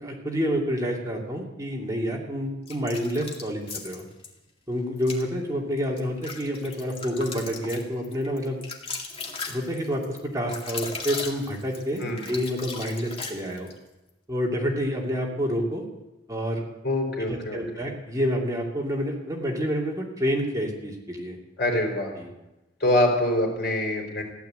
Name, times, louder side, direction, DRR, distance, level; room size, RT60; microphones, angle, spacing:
voice 1, 0.0-4.0 4.7-8.6 9.5-13.7 14.3-15.8 16.3-16.6 17.3-21.4 22.2-22.3, equal, 20° right, -1 dB, 2.6 m, -28 dB
sound 1, 2.7-4.3 5.0-5.2 5.8-13.8, left 4 dB, 35° left, 2.2 m, -37 dB
voice 2, 16.8-17.9 21.6-22.1 22.8-24.2, left 1 dB, 60° left, 2 dB, 4.1 m, -25 dB
15.5 x 11.5 x 7.8 m, 0.98 s
head